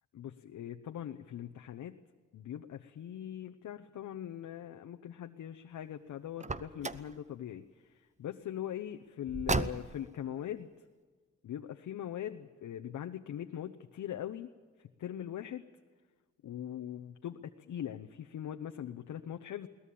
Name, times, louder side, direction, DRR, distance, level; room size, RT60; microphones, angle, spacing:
voice 1, 0.1-2.0 2.3-10.7 11.4-14.5 14.8-15.6 16.4-19.7, left 10 dB, 90° left, 6 dB, 0.9 m, -41 dB
Car, 6.4-7.1 9.3-10.1, right 3 dB, 25° right, 0.9 m, -34 dB
22.0 x 19.0 x 8.5 m, 1.4 s
cardioid pair, 90°, 29 cm